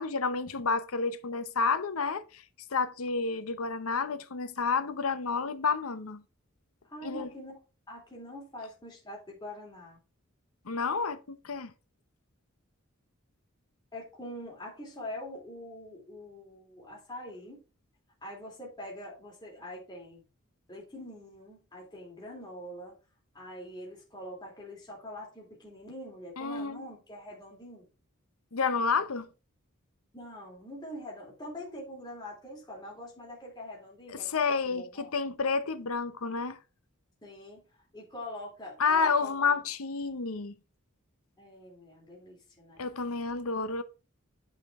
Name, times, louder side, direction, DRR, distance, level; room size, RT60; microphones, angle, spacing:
voice 1, 0.0-2.4 2.7-6.2 7.0-7.3 10.7-11.7 26.4-26.8 28.5-29.3 34.1-36.6 38.8-40.6 42.8-43.8, left 4 dB, 85° left, 0.8 m, -30 dB
voice 2, 6.9-7.6 7.9-10.0 13.9-17.6 18.2-20.2 20.7-22.9 23.3-27.9 30.1-35.1 37.2-37.6 37.9-39.5 41.4-42.9, left 1 dB, 20° left, 3.1 m, -44 dB
9.1 x 5.1 x 3.6 m
head